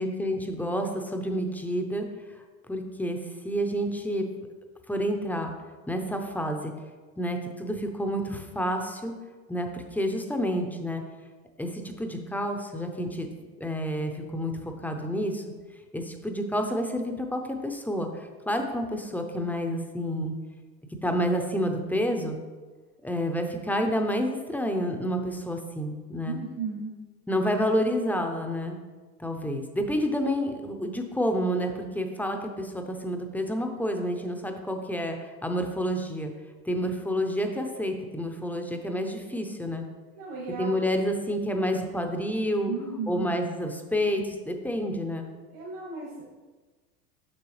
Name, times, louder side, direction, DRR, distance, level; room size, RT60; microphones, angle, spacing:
voice 1, 0.0-2.1 2.7-3.2 3.4-4.3 4.9-5.5 5.9-6.7 7.2-9.1 9.5-11.0 11.6-13.3 13.6-15.4 15.9-20.3 21.0-22.4 23.0-26.4 27.3-28.8 29.2-36.3 36.7-39.8 40.6-42.7 43.1-45.3, equal, 5° left, 4 dB, 0.6 m, -29 dB
voice 2, 26.2-26.9 40.1-40.7 42.7-43.3 45.5-46.3, right 5 dB, 70° right, -6 dB, 2.2 m, -35 dB
7.0 x 6.1 x 3.2 m, 1.3 s
hypercardioid pair, 90°, 46 cm